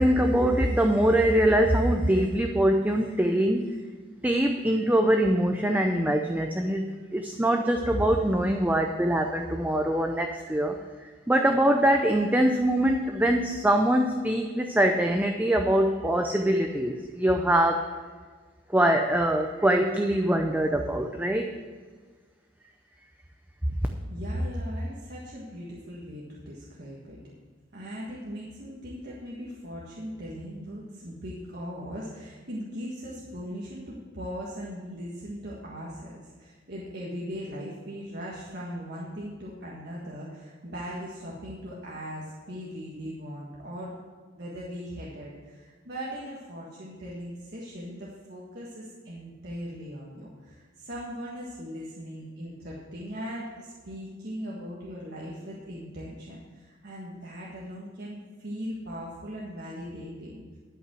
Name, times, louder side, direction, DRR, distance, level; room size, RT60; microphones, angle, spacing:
voice 1, 0.0-3.7 4.2-17.9 18.7-21.5, right 1 dB, 10° right, 3 dB, 0.5 m, -23 dB
voice 2, 24.1-27.2 27.7-44.0 44.4-60.6, equal, 55° right, -5 dB, 1.7 m, -39 dB
12.0 x 5.5 x 7.7 m, 1.5 s
head